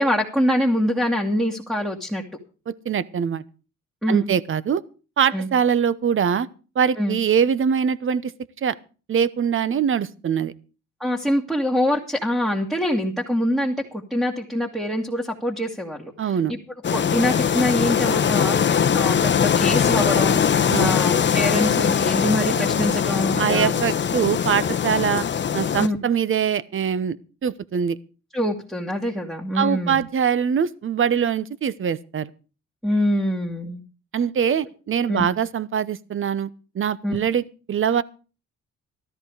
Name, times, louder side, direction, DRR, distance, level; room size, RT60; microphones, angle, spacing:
voice 1, 0.0-2.2 4.0-4.3 5.3-5.5 7.0-7.2 11.0-16.6 16.9-23.8 25.8-26.0 28.3-30.0 32.8-33.8 35.1-35.3 37.0-37.2, left 1 dB, ahead, -1 dB, 2.2 m, -24 dB
voice 2, 2.7-3.4 4.1-4.8 5.2-6.5 6.7-8.3 8.6-8.8 9.1-10.5 16.2-16.5 20.7-20.9 23.4-25.2 25.5-27.2 27.4-28.0 29.5-32.3 34.1-36.5 36.7-38.0, right 7 dB, 45° right, 18 dB, 0.9 m, -23 dB
sound 1, 16.8-25.9, left 7 dB, 40° left, 0.8 m, -21 dB
13.5 x 13.5 x 4.9 m, 0.36 s
cardioid pair, 90°, 30 cm